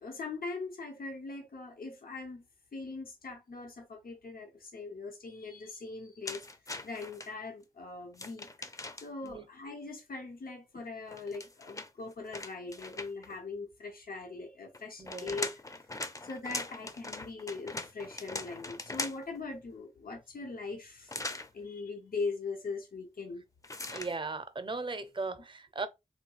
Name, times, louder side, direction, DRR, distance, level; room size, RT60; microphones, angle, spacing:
voice 1, 0.0-2.4 2.7-6.4 6.8-8.5 9.0-15.5 16.2-21.2 21.5-23.4, left 3 dB, 90° left, 0.6 m, -41 dB
sound 1, 6.2-7.3 8.1-9.3 11.1-13.4 14.7-19.4 21.1-21.5 23.6-24.1, left 2 dB, 25° left, 0.4 m, -40 dB
voice 2, 15.0-15.4 23.9-25.9, right 3 dB, 35° right, 0.5 m, -37 dB
3.5 x 2.3 x 2.9 m
wide cardioid pair, 70°, 15 cm